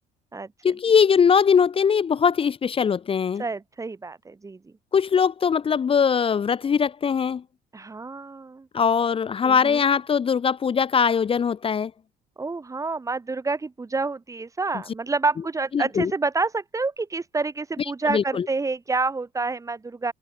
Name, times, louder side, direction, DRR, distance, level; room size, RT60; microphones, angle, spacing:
voice 1, 0.6-3.4 4.9-7.4 8.7-11.9 15.7-16.1 18.1-18.5, left 6 dB, 35° left, 0.9 m, -21 dB
voice 2, 3.4-4.7 7.7-8.7 9.4-9.8 12.4-20.1, right 3 dB, 20° right, 1.4 m, -28 dB
cardioid pair, 110°, 17 cm